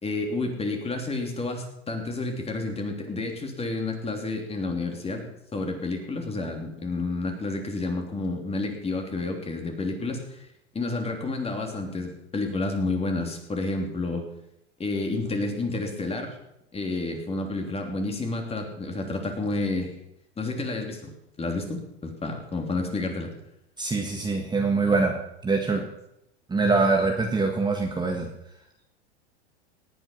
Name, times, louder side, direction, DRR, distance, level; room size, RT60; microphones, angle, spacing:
voice 1, 0.0-10.4 10.7-14.2 14.8-16.4 16.7-19.9 20.4-21.1 21.4-23.3, left 2 dB, 20° left, 3 dB, 3.1 m, -30 dB
voice 2, 23.8-25.2 25.4-25.8 26.5-28.3, right 3 dB, 15° right, 2 dB, 1.6 m, -24 dB
18.0 x 9.2 x 5.5 m, 0.83 s
hypercardioid pair, 110°, 33 cm